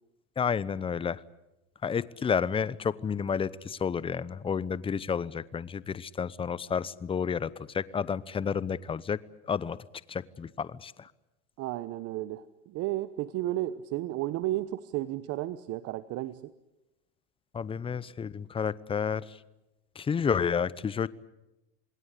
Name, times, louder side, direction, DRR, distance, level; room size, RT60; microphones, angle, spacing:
voice 1, 0.4-1.2 1.8-9.8 10.1-11.1 17.5-19.4 19.9-21.1, left 6 dB, 15° left, 19 dB, 0.8 m, -31 dB
voice 2, 11.6-16.5, right 15 dB, 45° right, 14 dB, 1.0 m, -33 dB
27.5 x 20.5 x 8.3 m, 0.95 s
supercardioid pair, 115°, 33 cm